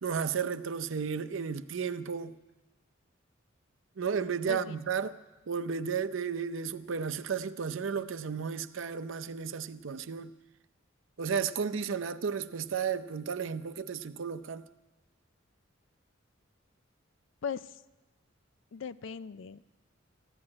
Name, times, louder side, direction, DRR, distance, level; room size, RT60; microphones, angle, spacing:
voice 1, 0.0-2.4 4.0-5.1 5.5-10.3 11.2-14.7, right 6 dB, 70° right, 0.6 m, -33 dB
voice 2, 17.4-17.8 18.7-19.6, left 6 dB, 65° left, 0.4 m, -38 dB
15.0 x 9.7 x 8.6 m
head